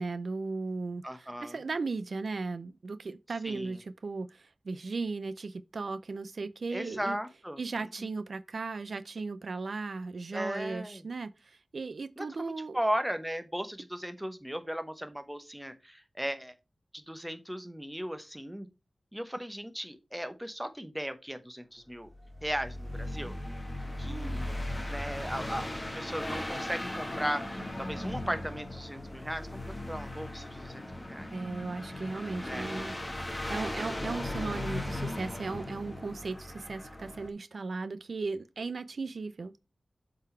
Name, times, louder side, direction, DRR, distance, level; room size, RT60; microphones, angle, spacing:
voice 1, 0.0-7.2 7.6-12.8 24.1-24.4 31.3-39.5, right 3 dB, 70° right, 0.4 m, -37 dB
voice 2, 1.0-1.6 3.4-3.8 6.7-7.6 8.0-8.1 10.3-11.0 12.2-16.5 16.9-18.7 19.1-22.1 22.4-23.3 24.0-24.6 24.9-25.7 25.9-27.4 27.8-31.3 32.4-32.7, equal, 5° right, 0.8 m, -37 dB
sound 1, 22.1-37.3, left 1 dB, 20° left, 1.1 m, -37 dB
7.4 x 4.0 x 4.3 m
wide cardioid pair, 80°, 0 cm